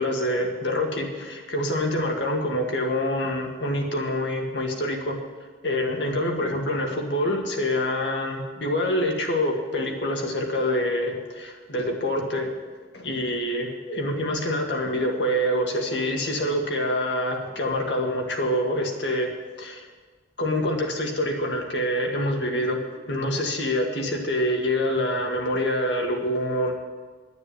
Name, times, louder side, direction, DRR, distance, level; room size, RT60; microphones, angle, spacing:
voice 1, 0.0-5.2 5.6-12.5 12.9-19.3 19.6-19.8 20.4-26.7, left 1 dB, 75° left, 1 dB, 2.0 m, -26 dB
9.8 x 9.4 x 8.2 m, 1.4 s
head